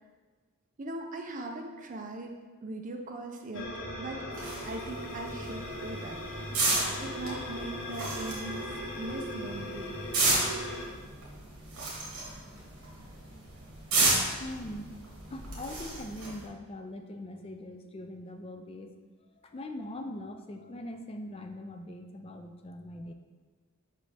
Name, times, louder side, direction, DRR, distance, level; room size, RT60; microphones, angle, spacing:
voice 1, 0.8-3.7 4.0-6.2 7.0-10.0 13.0-13.1, right 1 dB, 35° right, 3 dB, 0.5 m, -40 dB
sound 1, 3.5-10.9, equal, 60° left, 0.9 m, -39 dB
sound 2, 4.3-16.5, right 2 dB, 60° right, 1.7 m, -33 dB
voice 2, 14.4-15.0 15.3-18.9 19.4-23.1, left 1 dB, 25° left, 5 dB, 0.4 m, -41 dB
5.6 x 5.0 x 3.3 m, 1.4 s
head